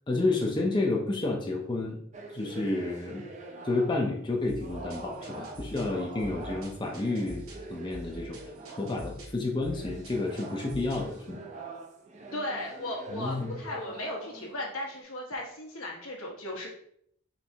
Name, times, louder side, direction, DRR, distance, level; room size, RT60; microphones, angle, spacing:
voice 1, 0.1-2.0 2.3-3.2 3.6-8.4 8.7-11.4 13.1-13.6, left 2 dB, 20° left, 0 dB, 0.5 m, -30 dB
sound 1, 2.1-4.2 4.6-9.1 9.6-15.0, right 2 dB, 35° right, 0.6 m, -44 dB
sound 2, 4.5-11.2, equal, 80° right, 1.6 m, -45 dB
voice 2, 12.3-16.7, left 1 dB, 90° left, -1 dB, 1.2 m, -36 dB
4.3 x 3.2 x 2.8 m, 0.68 s
head